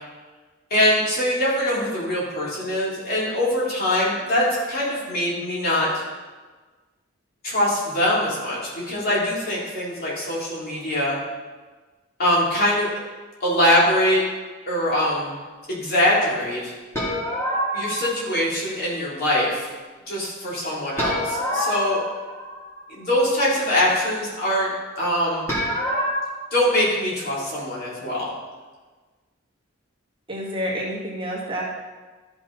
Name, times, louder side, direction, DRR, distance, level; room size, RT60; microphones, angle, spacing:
voice 1, 0.7-6.0 7.4-11.2 12.2-13.0 13.4-14.2 14.7-15.3 15.7-16.7 17.7-19.7 20.1-22.0 22.9-25.5 26.5-28.3, left 1 dB, 50° left, -6 dB, 3.2 m, -23 dB
sound 1, 16.9-18.3 21.0-22.9 25.5-26.2, equal, 15° left, 2.8 m, -26 dB
voice 2, 30.3-31.6, equal, 25° right, -5 dB, 2.0 m, -28 dB
13.0 x 5.9 x 4.0 m, 1.3 s
head